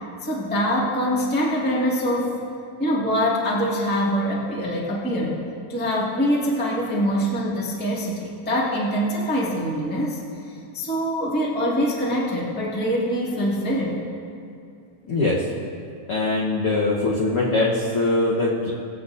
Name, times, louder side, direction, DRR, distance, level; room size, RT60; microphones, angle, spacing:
voice 1, 0.2-2.3 2.8-5.4 5.7-10.2 10.7-14.0, equal, 15° left, -6 dB, 0.3 m, -24 dB
voice 2, 15.0-15.4 16.1-18.7, left 2 dB, 85° left, -5 dB, 1.2 m, -22 dB
22.5 x 8.2 x 2.6 m, 2.5 s
omnidirectional pair, 4.2 m